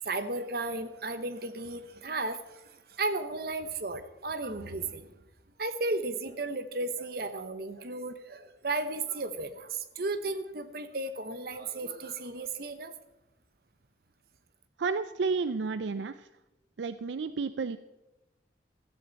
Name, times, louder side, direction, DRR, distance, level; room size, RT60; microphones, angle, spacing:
voice 1, 0.0-5.1 5.6-12.9, right 2 dB, 55° right, 10 dB, 1.0 m, -34 dB
voice 2, 14.8-16.3 16.8-17.8, right 4 dB, 75° right, 12 dB, 0.4 m, -31 dB
16.0 x 13.5 x 4.1 m, 0.96 s
head